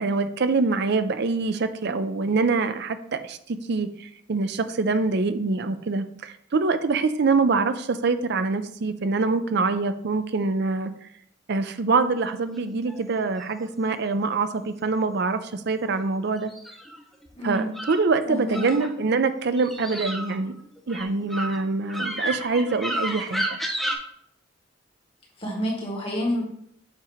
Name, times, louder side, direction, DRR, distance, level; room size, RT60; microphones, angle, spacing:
voice 1, 0.0-10.9 11.5-16.5 17.4-20.5 20.9-23.4, right 4 dB, 55° right, 10 dB, 0.5 m, -25 dB
sound 1, 12.7-13.7 16.4-18.0 18.5-19.2 19.5-24.0, right 1 dB, ahead, 0.7 m, -32 dB
voice 2, 17.3-17.7 18.2-18.6 25.4-26.4, equal, 30° left, -2 dB, 1.7 m, -28 dB
7.5 x 2.9 x 5.0 m, 0.71 s
head